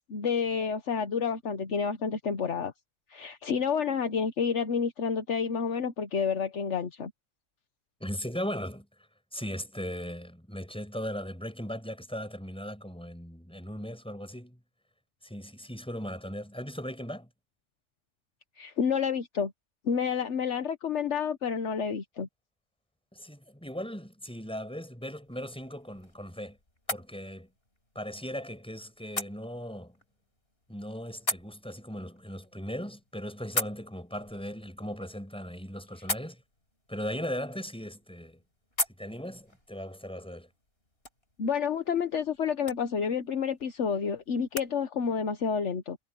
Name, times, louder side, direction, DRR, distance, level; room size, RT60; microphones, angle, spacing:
voice 1, 0.0-2.7 3.1-7.1 18.6-19.5 19.8-22.3 41.4-46.0, left 6 dB, 70° left, 1.4 m, -29 dB
voice 2, 8.0-8.9 9.3-14.6 15.2-17.3 23.1-26.6 26.9-27.5 27.9-30.0 30.7-36.4 36.9-38.4 39.0-40.5, equal, 5° left, 7.7 m, -38 dB
sound 1, 25.2-44.7, left 1 dB, 55° left, 6.2 m, -41 dB
omnidirectional pair, 1.2 m